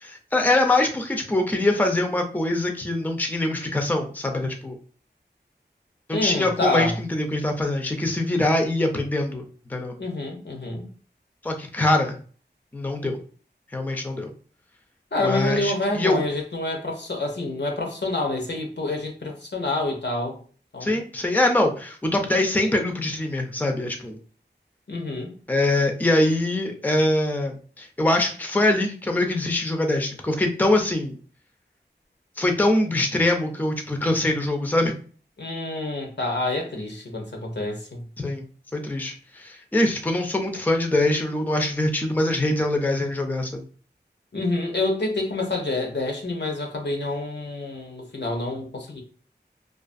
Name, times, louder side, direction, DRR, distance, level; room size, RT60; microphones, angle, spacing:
voice 1, 0.0-4.8 6.1-9.4 9.7-10.0 11.4-12.2 12.7-13.2 13.7-14.3 15.2-16.2 20.8-24.2 25.5-31.2 32.4-34.9 38.2-38.4 38.7-43.6, left 1 dB, 10° left, 0.4 m, -23 dB
voice 2, 6.1-6.9 10.0-10.9 15.1-20.4 20.7-21.0 24.9-25.3 35.4-38.0 44.3-49.0, left 2 dB, 75° left, 0.7 m, -27 dB
2.4 x 2.4 x 2.5 m
wide cardioid pair, 45°, 18 cm